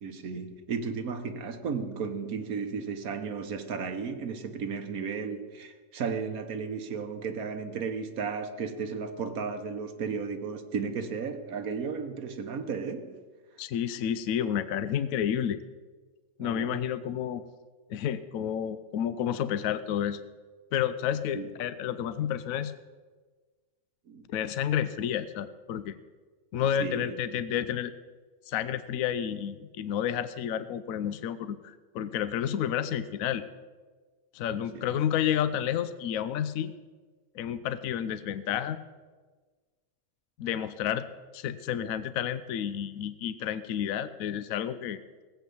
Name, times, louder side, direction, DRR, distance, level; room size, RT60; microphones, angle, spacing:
voice 1, 0.0-13.2 16.4-16.8 21.3-21.5 24.1-24.2 26.6-27.2 34.6-34.9, right 5 dB, 90° right, 1.5 m, -34 dB
voice 2, 13.6-15.6 16.4-17.4 17.9-20.2 20.7-22.7 24.3-26.0 26.5-27.9 28.5-33.4 34.3-36.7 37.3-38.8 40.4-41.1 41.3-45.0, left 9 dB, 75° left, 1.0 m, -30 dB
17.5 x 8.1 x 7.0 m
omnidirectional pair, 1.5 m